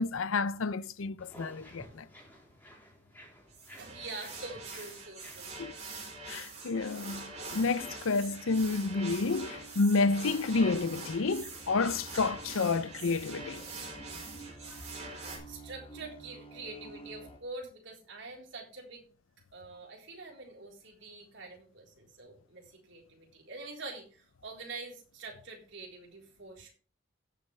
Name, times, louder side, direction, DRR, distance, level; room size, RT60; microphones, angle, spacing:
voice 1, 0.0-2.1 5.6-5.7 6.3-13.6, left 3 dB, 85° left, 0.6 m, -30 dB
sound 1, 1.2-6.3, equal, 10° left, 3.5 m, -54 dB
sound 2, 3.5-15.4, right 3 dB, 35° right, 3.8 m, -44 dB
voice 2, 3.8-5.5 14.7-15.0 15.5-19.1 19.5-26.7, right 3 dB, 65° right, 4.0 m, -45 dB
sound 3, 6.1-17.4, right 2 dB, 25° left, 1.6 m, -51 dB
16.5 x 7.6 x 3.3 m
head